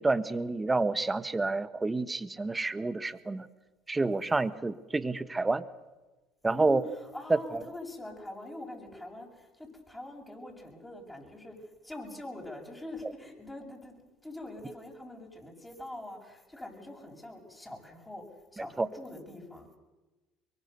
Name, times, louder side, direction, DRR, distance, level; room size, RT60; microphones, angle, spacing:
voice 1, 0.0-3.5 3.9-5.6 6.4-6.8 7.3-7.4 18.6-18.9, right 3 dB, 20° right, 14 dB, 1.4 m, -29 dB
voice 2, 6.5-18.2 18.5-19.8, left 1 dB, 10° left, 0 dB, 7.5 m, -44 dB
24.0 x 23.5 x 6.9 m, 1.2 s
hypercardioid pair, 70°, 0 cm